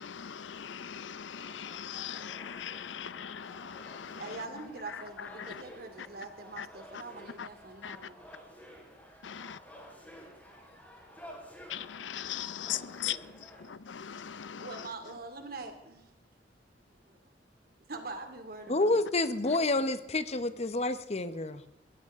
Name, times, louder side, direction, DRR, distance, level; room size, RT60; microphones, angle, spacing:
voice 1, 0.0-5.6 6.0-6.1 6.6-6.7 6.9-7.0 7.4-7.5 7.8-8.1 9.2-9.6 11.7-15.1 19.5-19.6, left 9 dB, 85° left, 0.6 m, -40 dB
sound 1, 1.3-13.7, equal, 10° left, 4.5 m, -52 dB
voice 2, 4.2-8.2 13.7-13.8 14.6-16.0 17.1-17.2 17.9-19.0, right 3 dB, 55° right, 2.6 m, -43 dB
voice 3, 18.7-21.6, left 2 dB, 35° left, 1.0 m, -29 dB
22.0 x 16.5 x 3.7 m
head